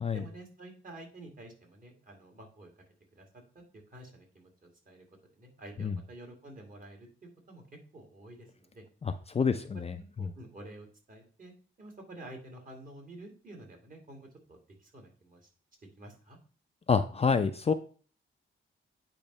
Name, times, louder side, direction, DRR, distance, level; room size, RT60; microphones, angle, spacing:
voice 1, 0.1-2.7 3.2-3.3 3.5-5.0 5.4-7.6 7.9-8.8 9.8-11.5 11.8-15.5 16.0-16.4, right 1 dB, 40° right, 2 dB, 2.2 m, -50 dB
voice 2, 9.0-9.9 10.2-10.3 16.9-17.7, left 5 dB, 30° left, 8 dB, 0.4 m, -28 dB
8.7 x 3.0 x 5.4 m, 0.40 s
wide cardioid pair, 135°, 21 cm